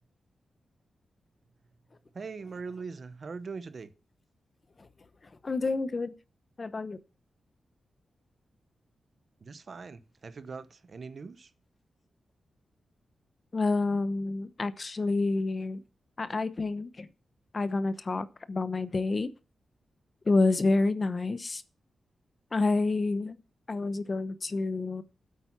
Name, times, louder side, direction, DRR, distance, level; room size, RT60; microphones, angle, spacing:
voice 1, 2.1-3.9 9.4-11.5, right 4 dB, 45° right, 0.9 m, -41 dB
voice 2, 5.4-6.1 6.6-7.0 13.5-15.8 16.2-17.1 17.5-19.3 20.3-21.6 22.5-23.4 23.7-25.0, left 3 dB, 30° left, 0.8 m, -28 dB
9.1 x 8.3 x 5.9 m
wide cardioid pair, 150°, 0 cm